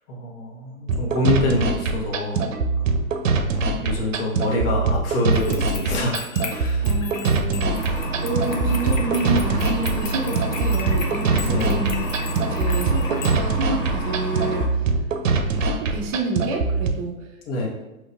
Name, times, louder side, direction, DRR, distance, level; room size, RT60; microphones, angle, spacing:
voice 1, 0.1-2.5 3.4-6.9 11.4-11.9 17.5-17.7, left 1 dB, 45° left, -1 dB, 1.1 m, -26 dB
sound 1, 0.9-16.9, right 4 dB, 65° right, 0.6 m, -23 dB
sound 2, 5.3-13.4, left 5 dB, 70° left, 0.7 m, -37 dB
voice 2, 6.8-14.9 15.4-17.3, right 2 dB, 25° right, 2 dB, 0.5 m, -29 dB
sound 3, 7.7-14.7, right 2 dB, 10° left, 0.7 m, -28 dB
5.1 x 3.1 x 2.5 m, 1.0 s
figure-of-eight pair, 110°, 41 cm